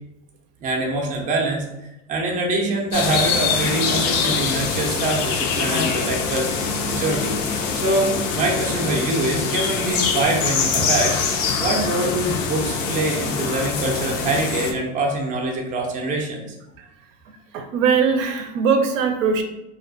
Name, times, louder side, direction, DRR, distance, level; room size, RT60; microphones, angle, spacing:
voice 1, 0.6-1.7 2.1-6.5 6.9-7.4 7.7-11.2 11.6-16.5, right 2 dB, 20° right, 0 dB, 0.4 m, -24 dB
sound 1, 2.9-14.7, left 5 dB, 75° left, 0.6 m, -24 dB
voice 2, 17.5-19.4, right 6 dB, 75° right, 5 dB, 0.5 m, -20 dB
2.3 x 2.2 x 2.5 m, 0.90 s
supercardioid pair, 105°, 39 cm